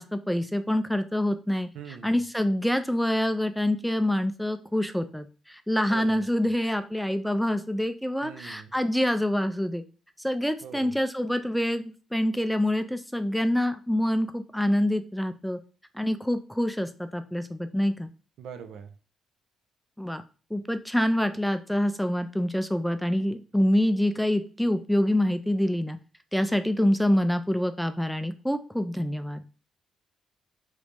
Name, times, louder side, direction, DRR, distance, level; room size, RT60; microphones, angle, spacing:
voice 1, 0.0-1.7 2.0-9.8 10.2-15.6 15.9-18.1 20.0-20.2 20.5-26.0 26.3-29.4, left 1 dB, ahead, 9 dB, 0.4 m, -26 dB
voice 2, 1.7-2.1 5.9-6.2 8.2-8.7 10.6-11.0 18.4-18.9, right 7 dB, 80° right, 7 dB, 0.4 m, -42 dB
3.0 x 2.6 x 3.3 m, 0.35 s
cardioid pair, 90°, 0 cm